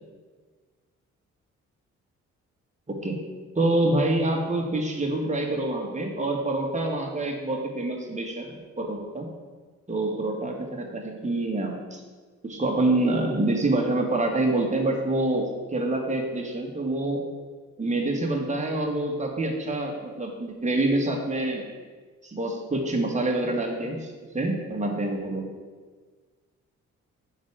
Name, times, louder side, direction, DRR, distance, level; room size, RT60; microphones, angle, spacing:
voice 1, 3.5-8.5 8.8-9.3 9.9-12.0 12.4-17.2 17.8-21.7 22.2-25.5, right 2 dB, 20° right, 0 dB, 2.2 m, -26 dB
7.9 x 5.0 x 7.4 m, 1.5 s
supercardioid pair, 55°, 33 cm